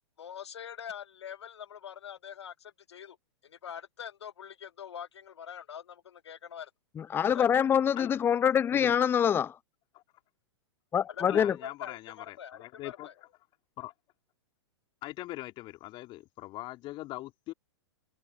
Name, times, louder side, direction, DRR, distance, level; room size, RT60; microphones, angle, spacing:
voice 1, 0.2-3.2 3.4-6.7 7.2-7.5 11.1-13.1, left 8 dB, 65° left, 1.6 m, -44 dB
voice 2, 7.0-9.6 10.9-11.6, left 8 dB, 15° left, 0.5 m, -25 dB
voice 3, 11.3-13.1 13.8-13.9 15.0-17.5, left 17 dB, 30° left, 3.8 m, -41 dB
figure-of-eight pair, 105°, 15 cm